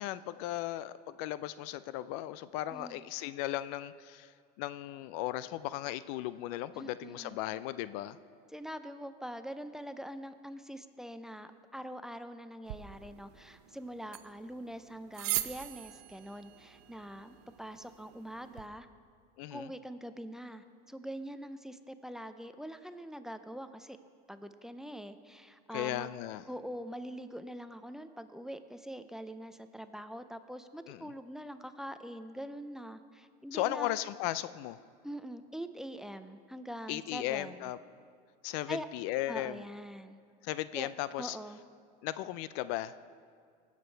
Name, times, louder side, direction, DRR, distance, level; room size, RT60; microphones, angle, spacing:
voice 1, 0.0-4.3 4.6-8.2 19.4-19.7 25.7-26.4 30.9-31.0 33.5-34.8 36.9-37.8 38.4-39.6 40.4-41.4 42.0-42.9, left 14 dB, 65° left, 15 dB, 0.5 m, -36 dB
voice 2, 2.7-3.0 6.7-7.4 8.5-18.9 19.5-24.0 24.3-26.1 26.5-33.9 35.0-37.7 38.7-38.9 39.3-40.2 40.7-40.9 41.2-41.6, equal, ahead, 10 dB, 0.5 m, -44 dB
sound 1, 12.7-18.7, right 16 dB, 75° right, 0.7 m, -42 dB
18.5 x 7.3 x 4.5 m, 2.1 s
supercardioid pair, 110°, 21 cm